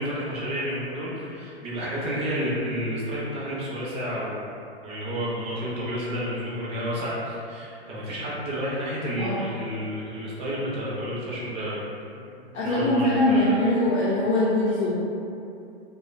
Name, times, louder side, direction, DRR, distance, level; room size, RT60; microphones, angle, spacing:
voice 1, 0.0-4.5 4.8-11.8 12.6-13.7, equal, 20° right, -7 dB, 0.4 m, -30 dB
voice 2, 9.2-9.5 12.5-15.0, left 1 dB, 75° left, -8 dB, 0.6 m, -22 dB
2.5 x 2.1 x 2.4 m, 2.6 s
hypercardioid pair, 125°, 33 cm